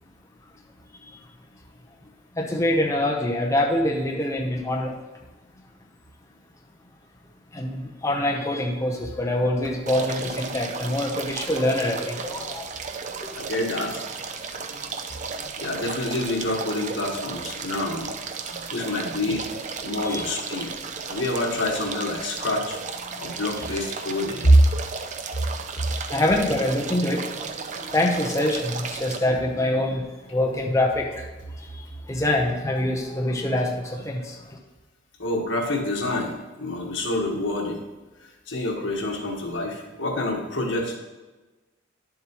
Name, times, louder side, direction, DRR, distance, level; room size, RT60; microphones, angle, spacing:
voice 1, 2.4-4.9 7.5-12.6 13.2-13.3 20.0-20.2 26.1-27.3 27.9-31.2 32.1-34.3, left 1 dB, 15° left, -1 dB, 0.7 m, -25 dB
sound 1, 9.9-29.2, right 5 dB, 40° right, 0.5 m, -34 dB
voice 2, 13.3-14.0 15.6-18.1 18.5-19.5 19.8-20.7 21.1-22.8 23.2-24.6 35.2-37.8 38.2-41.0, equal, 75° left, 1 dB, 1.4 m, -26 dB
10.5 x 7.2 x 3.0 m, 1.2 s
head